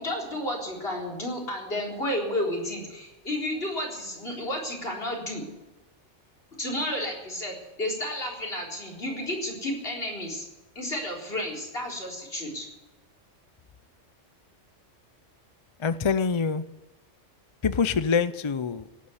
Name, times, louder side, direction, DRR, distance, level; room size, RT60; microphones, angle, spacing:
voice 1, 0.0-5.4 6.6-10.4 10.7-12.7, left 1 dB, 55° left, 0 dB, 4.5 m, -32 dB
voice 2, 15.8-16.6 17.6-18.8, left 5 dB, 40° left, 14 dB, 0.4 m, -25 dB
17.5 x 9.7 x 8.1 m, 1.1 s
omnidirectional pair, 1.2 m